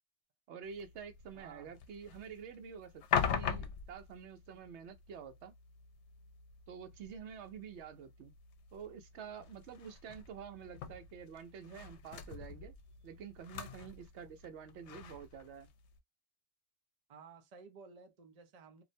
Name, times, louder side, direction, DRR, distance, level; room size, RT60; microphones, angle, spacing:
voice 1, 0.5-5.5 6.7-8.3 8.7-12.7 13.0-15.7, right 7 dB, 80° right, 0.9 m, -48 dB
sound 1, 0.6-16.0, left 7 dB, 80° left, 0.9 m, -43 dB
voice 2, 1.3-1.7 17.1-18.8, right 5 dB, 45° right, 0.5 m, -55 dB
2.5 x 2.1 x 2.5 m
omnidirectional pair, 1.1 m